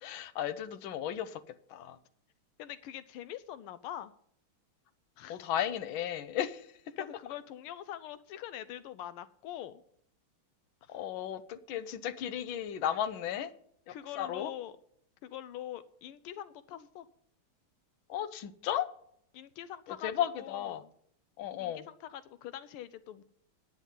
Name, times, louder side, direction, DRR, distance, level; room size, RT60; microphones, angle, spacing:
voice 1, 0.0-1.4 1.7-2.0 5.3-6.7 10.9-13.5 13.9-14.5 18.1-18.9 20.0-20.8 21.4-21.8, left 10 dB, 70° left, 12 dB, 1.5 m, -34 dB
voice 2, 2.6-4.1 5.2-5.4 7.0-9.8 10.8-11.0 13.9-14.8 15.2-17.1 19.3-20.9 21.6-23.2, left 11 dB, 85° left, 14 dB, 1.5 m, -44 dB
10.5 x 9.4 x 5.6 m, 0.66 s
omnidirectional pair, 2.4 m